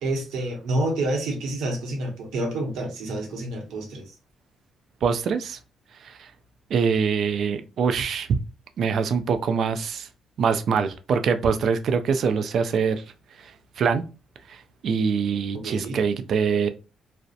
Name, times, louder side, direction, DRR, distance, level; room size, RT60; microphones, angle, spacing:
voice 1, 0.0-4.1 15.5-16.0, right 1 dB, 85° right, 0.8 m, -28 dB
voice 2, 5.0-5.6 6.0-6.3 6.7-8.4 8.8-10.1 10.4-13.0 13.4-14.0 14.5-16.7, right 6 dB, 65° right, 0.3 m, -24 dB
2.7 x 2.0 x 2.3 m
cardioid pair, 90°, 0 cm